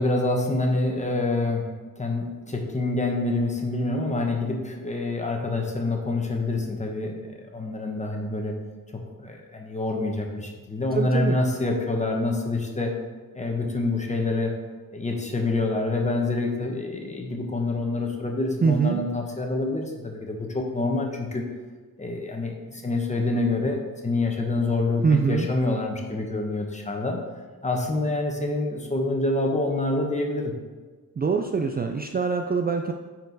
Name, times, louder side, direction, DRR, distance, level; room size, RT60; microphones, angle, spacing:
voice 1, 0.0-1.7 2.0-8.5 8.9-12.9 13.3-14.5 14.9-21.4 22.0-27.2 27.6-30.5, left 2 dB, 20° left, 1 dB, 1.1 m, -26 dB
voice 2, 10.9-11.4 18.6-19.0 25.0-25.5 31.2-32.9, right 5 dB, 25° right, 4 dB, 0.4 m, -23 dB
9.4 x 4.5 x 4.1 m, 1.4 s
wide cardioid pair, 125°, 35 cm